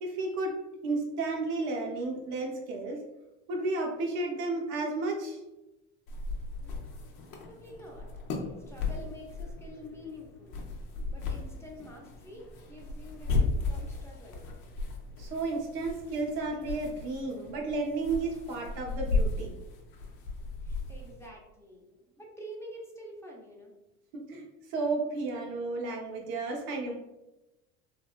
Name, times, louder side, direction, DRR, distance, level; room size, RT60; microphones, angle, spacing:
voice 1, 0.0-3.0 3.5-5.4 15.2-19.6 24.1-24.4 24.7-26.9, right 3 dB, 70° right, 1 dB, 0.8 m, -32 dB
sound 1, 6.1-21.3, left 3 dB, 60° left, 0.7 m, -35 dB
voice 2, 7.4-8.1 8.7-10.6 11.1-14.4 20.6-23.7, equal, 5° left, -2 dB, 0.7 m, -47 dB
3.3 x 2.2 x 2.4 m, 0.98 s
hypercardioid pair, 75°, 38 cm